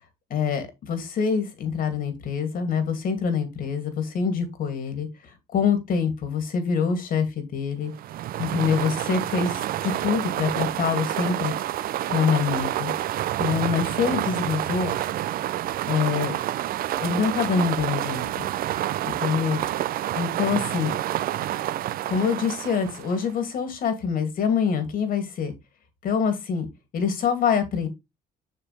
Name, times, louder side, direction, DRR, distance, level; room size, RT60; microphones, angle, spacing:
voice 1, 0.3-5.1 5.5-7.9 8.4-11.5 12.1-12.9 13.4-14.9 15.9-16.4 17.0-18.3 19.0-19.6 20.1-20.9 22.1-25.5 26.0-26.7 26.9-27.9, left 6 dB, 60° left, 8 dB, 2.6 m, -25 dB
sound 1, 7.9-23.4, right 13 dB, 60° right, 0.5 m, -28 dB
6.9 x 6.9 x 3.4 m, 0.21 s
cardioid pair, 110°, 17 cm